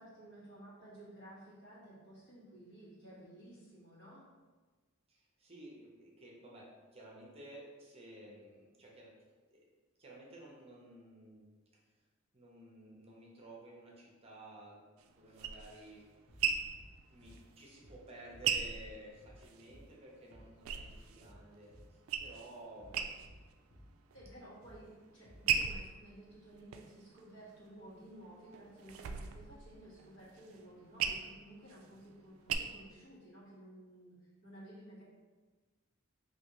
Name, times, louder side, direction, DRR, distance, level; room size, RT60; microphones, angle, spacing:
voice 1, 0.0-4.2 24.1-35.0, right 1 dB, 65° left, -8 dB, 1.3 m, -54 dB
voice 2, 5.1-9.1 9.5-9.6 10.0-11.5 11.7-11.8 12.3-16.1 17.1-23.1, right 1 dB, 30° right, -3 dB, 0.6 m, -54 dB
sound 1, 15.0-19.7 20.1-21.4 21.7-22.6 22.9-23.5 23.9-24.5 25.0-27.7 28.2-32.5, right 7 dB, 90° right, 0.3 m, -38 dB
sound 2, 16.3-16.5 16.7-16.9 17.2-17.4 17.8-18.0 18.3-18.5 18.8-19.0 19.2-19.4 19.7-19.9 20.3-20.5 20.8-21.0 21.2-21.4 21.7-21.9 22.2-22.4 22.8-23.0 23.2-23.4 23.7-23.9 24.2-24.4 24.6-24.8 25.2-25.4 25.7-25.9, equal, 30° left, 0.8 m, -57 dB
3.4 x 2.7 x 3.0 m, 1.3 s
head